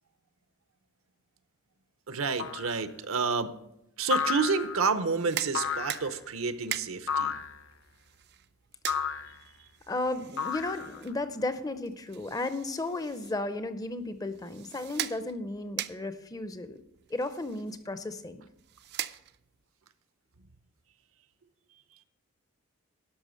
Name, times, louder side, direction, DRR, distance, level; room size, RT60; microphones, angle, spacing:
voice 1, 2.1-3.5 4.0-7.3, right 5 dB, 70° right, 11 dB, 0.7 m, -29 dB
sound 1, 2.4-2.8 4.1-4.9 5.5-6.1 7.1-7.6 8.9-9.4 10.4-11.1, left 6 dB, 60° left, 0.6 m, -32 dB
sound 2, 5.0-19.7, right 12 dB, 50° right, 0.4 m, -42 dB
voice 2, 9.9-16.8 17.1-18.4, left 2 dB, 15° left, 11 dB, 0.5 m, -34 dB
12.0 x 5.8 x 6.3 m, 0.82 s
head